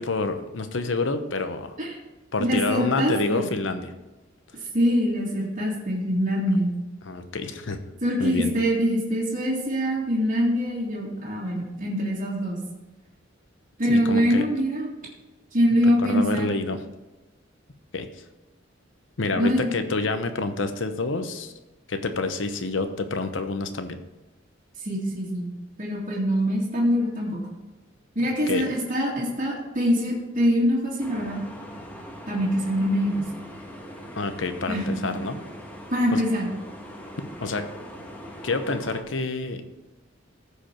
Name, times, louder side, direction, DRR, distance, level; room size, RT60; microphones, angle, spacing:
voice 1, 0.0-1.8 2.3-3.9 7.0-7.8 8.2-8.5 13.9-14.5 15.8-16.8 17.9-18.2 19.2-21.5 21.9-24.0 28.5-28.6 34.2-35.4 36.1-36.2 37.4-37.7 38.4-39.6, left 3 dB, 75° left, 8 dB, 0.9 m, -28 dB
voice 2, 2.4-3.1 4.7-6.7 8.0-12.6 13.8-14.9 15.5-16.5 19.3-19.7 24.8-25.5 25.8-27.4 28.2-31.4 32.3-33.3 34.7-35.1 35.9-36.5, equal, 45° right, -6 dB, 2.1 m, -24 dB
sound 1, 31.0-39.0, equal, 10° left, 1.3 m, -41 dB
15.0 x 5.1 x 4.4 m, 1.1 s
head